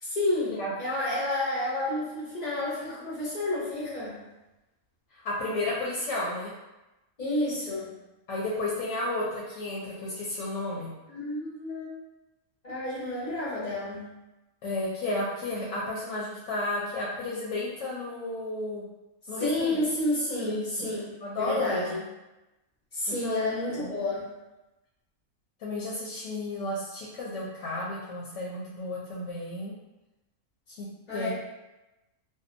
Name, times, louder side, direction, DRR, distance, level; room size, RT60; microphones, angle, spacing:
voice 1, 0.0-4.2 7.2-7.9 11.1-11.9 12.6-14.1 19.4-22.0 22.9-24.2 31.1-31.3, left 1 dB, 50° left, -8 dB, 0.5 m, -30 dB
voice 2, 5.1-6.5 8.3-10.9 14.6-18.8 19.3-19.8 20.4-20.6 21.2-21.9 23.1-23.5 23.7-23.9 25.6-29.7 30.7-30.9 31.1-31.3, left 2 dB, 70° left, -5 dB, 0.9 m, -32 dB
2.6 x 2.1 x 2.5 m, 1.0 s
omnidirectional pair, 1.6 m